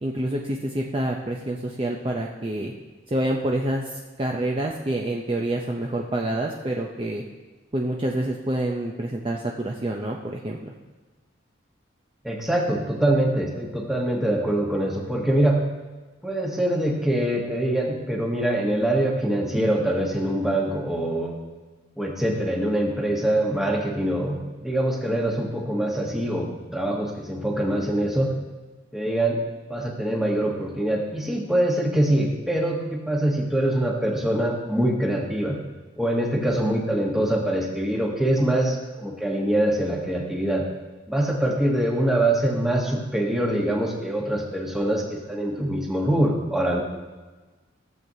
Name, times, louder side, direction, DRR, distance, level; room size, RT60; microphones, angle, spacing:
voice 1, 0.0-2.7 3.1-7.2 7.7-10.7, right 1 dB, 25° right, 0 dB, 0.5 m, -27 dB
voice 2, 12.2-15.6 16.2-21.4 22.0-28.3 28.9-29.4 29.7-35.6 36.0-40.6 41.1-46.8, right 1 dB, ahead, -1 dB, 1.1 m, -24 dB
15.0 x 7.6 x 2.7 m, 1.3 s
head